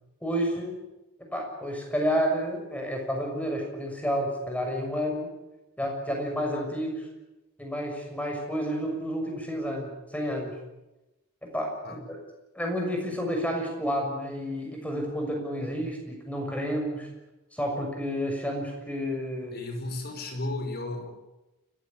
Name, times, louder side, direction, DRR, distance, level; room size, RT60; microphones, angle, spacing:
voice 1, 0.2-0.8 1.3-5.3 5.8-7.1 7.6-10.6 11.5-12.0 12.5-17.1 17.5-19.6, equal, 5° left, 2 dB, 6.4 m, -30 dB
voice 2, 19.5-21.1, left 2 dB, 45° left, 4 dB, 5.1 m, -34 dB
29.5 x 15.5 x 8.8 m, 0.98 s
head